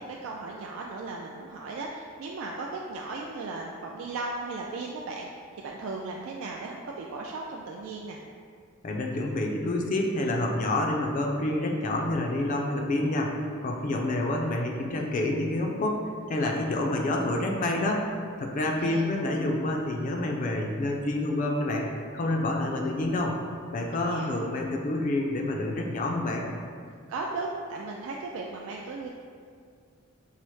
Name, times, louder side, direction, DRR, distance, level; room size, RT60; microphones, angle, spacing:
voice 1, 0.0-5.3 5.6-8.2 18.6-19.1 23.9-24.4 27.1-29.1, right 3 dB, 75° right, -1 dB, 0.3 m, -36 dB
voice 2, 8.8-13.4 13.6-16.0 16.3-18.0 18.4-21.9 22.1-23.4 23.7-26.5, left 1 dB, 40° left, 1 dB, 0.4 m, -28 dB
5.5 x 2.0 x 3.1 m, 2.1 s
head